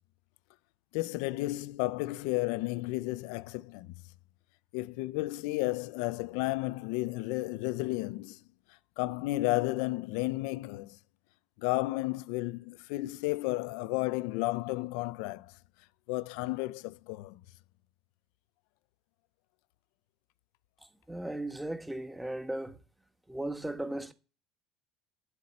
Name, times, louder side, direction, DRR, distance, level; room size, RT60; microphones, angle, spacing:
voice 1, 0.9-3.9 4.7-8.4 9.0-11.0 11.6-15.5 16.1-17.4, left 20 dB, 80° left, 0.4 m, -32 dB
voice 2, 21.1-22.8 23.3-24.1, right 1 dB, 5° right, 1.3 m, -36 dB
11.0 x 7.9 x 4.2 m
supercardioid pair, 85°, 0 cm